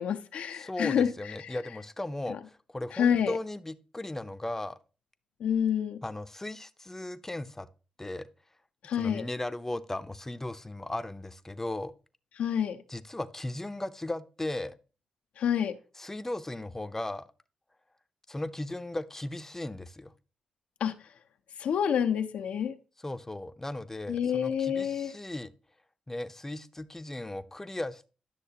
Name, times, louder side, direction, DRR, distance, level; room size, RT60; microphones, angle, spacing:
voice 1, 0.0-1.1 1.4-1.6 2.3-2.4 2.9-3.3 5.4-6.0 8.8-9.2 12.4-12.8 15.4-15.8 20.8-21.0 21.6-22.7 24.1-25.1, left 8 dB, 85° left, 0.5 m, -28 dB
voice 2, 0.6-4.8 6.0-7.7 8.0-8.3 8.9-11.9 12.9-14.8 16.0-17.3 18.3-20.1 23.0-25.5 26.1-28.0, left 1 dB, 15° left, 0.6 m, -36 dB
10.0 x 6.4 x 2.8 m
cardioid pair, 55°, 2 cm